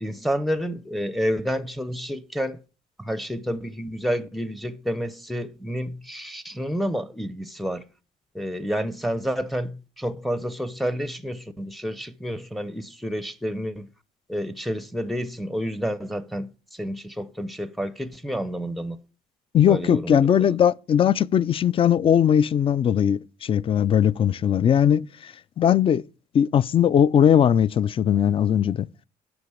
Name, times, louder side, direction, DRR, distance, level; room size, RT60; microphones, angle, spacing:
voice 1, 0.0-2.6 3.0-7.9 8.3-13.9 14.3-19.0 19.7-20.2, equal, ahead, 0.7 m, -29 dB
voice 2, 19.5-26.0 26.3-28.9, left 9 dB, 35° left, 0.4 m, -19 dB
7.9 x 5.2 x 6.9 m
cardioid pair, 110°, 17 cm